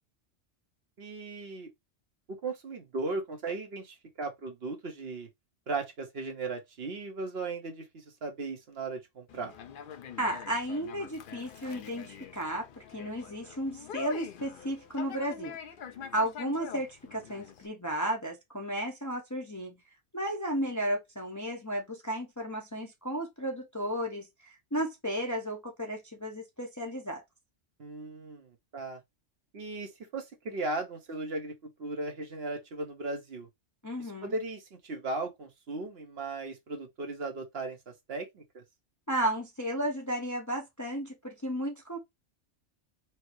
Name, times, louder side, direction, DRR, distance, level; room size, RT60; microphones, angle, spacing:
voice 1, 1.0-1.7 2.4-5.3 5.7-9.5 27.8-29.0 29.5-33.5 34.0-38.6, right 3 dB, 55° right, 1.1 m, -37 dB
Conversation, 9.3-17.7, left 8 dB, 55° left, 0.6 m, -45 dB
voice 2, 10.2-15.6 16.1-19.8 20.1-27.2 33.8-34.3 39.1-42.0, equal, 20° left, 0.7 m, -33 dB
4.5 x 2.0 x 4.5 m
omnidirectional pair, 1.3 m